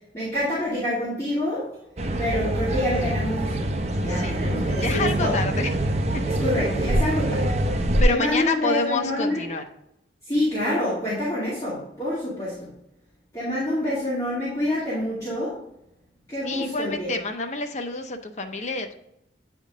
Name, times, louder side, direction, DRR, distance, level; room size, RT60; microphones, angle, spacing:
voice 1, 0.1-1.7 2.2-3.6 4.0-5.4 6.2-7.5 8.0-9.4 10.2-12.7 13.3-15.6 16.3-17.1, left 1 dB, 15° left, -12 dB, 2.6 m, -27 dB
sound 1, 2.0-8.0, right 1 dB, 35° right, 0.5 m, -25 dB
voice 2, 4.8-5.7 6.1-6.2 8.0-9.6 16.4-19.0, left 3 dB, 40° left, 5 dB, 0.6 m, -28 dB
9.2 x 3.7 x 3.6 m, 0.81 s
head